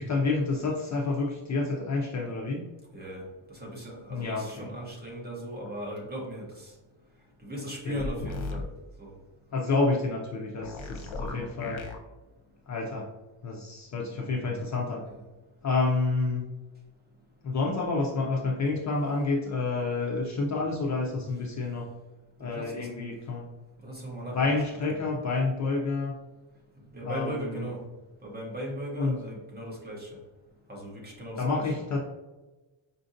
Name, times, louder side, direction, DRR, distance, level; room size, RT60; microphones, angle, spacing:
voice 1, 0.0-2.6 4.1-4.7 7.9-8.0 9.5-11.8 12.7-13.1 13.4-15.0 15.6-16.5 17.4-21.9 22.4-23.5 24.3-26.1 27.0-27.7 29.0-29.2 31.4-32.0, left 3 dB, 40° left, -1 dB, 0.4 m, -29 dB
voice 2, 3.6-6.5 7.4-8.6 9.0-9.1 22.4-22.9 23.8-25.0 26.9-27.8 28.2-30.1 30.7-31.7, equal, 20° right, -2 dB, 0.8 m, -37 dB
sound 1, 8.0-8.6 10.6-12.0, left 3 dB, 75° left, 0.8 m, -36 dB
5.0 x 2.6 x 2.5 m, 1.1 s
cardioid pair, 165°, 48 cm